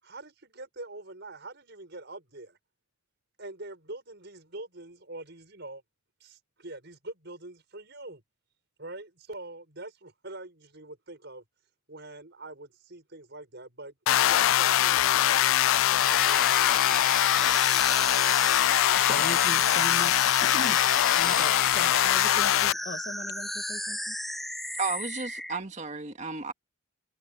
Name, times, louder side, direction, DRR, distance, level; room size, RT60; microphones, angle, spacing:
voice 1, 0.0-2.6 3.4-5.8 6.2-8.2 8.8-11.4 11.9-15.6 15.9-17.5, right 2 dB, 55° right, 6.6 m, -44 dB
sound 1, 14.1-22.7, left 12 dB, 70° left, 0.3 m, -22 dB
sound 2, 15.9-25.6, equal, ahead, 0.6 m, -34 dB
voice 2, 19.0-24.2, left 2 dB, 40° left, 2.3 m, -38 dB
voice 3, 24.8-26.5, right 4 dB, 35° right, 2.1 m, -33 dB
head